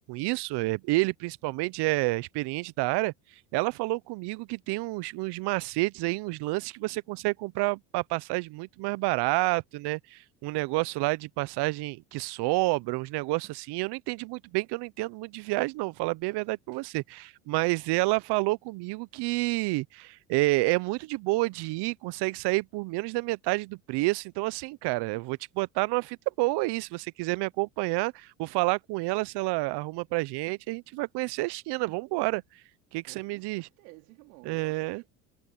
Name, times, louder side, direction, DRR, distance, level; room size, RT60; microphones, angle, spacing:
voice 1, 0.0-3.1 3.5-32.4 32.9-33.7 34.4-35.0, right 22 dB, 60° right, 0.8 m, -29 dB
voice 2, 33.0-35.1, right 26 dB, 80° right, 3.4 m, -53 dB
supercardioid pair, 85°, 45 cm